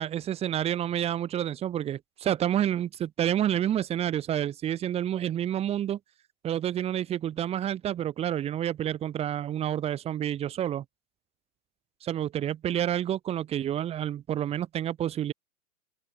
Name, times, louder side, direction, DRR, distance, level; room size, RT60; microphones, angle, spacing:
voice 1, 0.0-6.0 6.4-10.8 12.0-15.3, right 11 dB, 15° right, 0.6 m, -29 dB
open air
hypercardioid pair, 115°, 47 cm